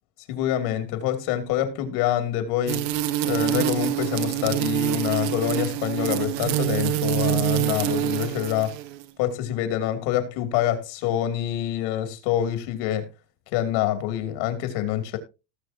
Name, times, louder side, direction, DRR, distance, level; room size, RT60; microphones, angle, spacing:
voice 1, 0.3-2.9 3.2-8.8 9.2-13.1 13.5-15.2, left 11 dB, 65° left, 2.8 m, -26 dB
sound 1, 2.7-9.0, right 14 dB, 85° right, 1.4 m, -26 dB
18.5 x 6.9 x 2.8 m
supercardioid pair, 140°, 49 cm